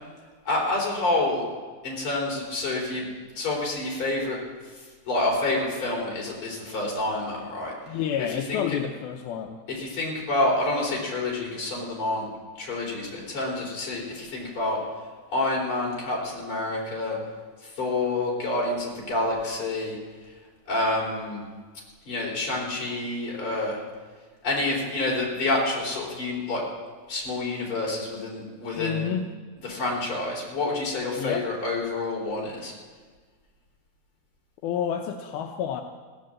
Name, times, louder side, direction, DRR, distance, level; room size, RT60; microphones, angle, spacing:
voice 1, 0.5-1.4 1.8-3.1 3.3-4.4 4.7-8.0 8.3-8.8 9.7-12.3 12.6-14.8 15.3-17.2 17.6-20.3 20.7-21.4 22.0-23.8 24.4-26.6 27.1-29.1 29.6-32.7, left 2 dB, 35° left, -3 dB, 4.2 m, -28 dB
voice 2, 7.9-9.6 28.7-29.3 31.2-31.5 34.6-35.8, left 8 dB, 80° left, 4 dB, 2.5 m, -29 dB
16.0 x 9.6 x 7.5 m, 1.5 s
omnidirectional pair, 4.3 m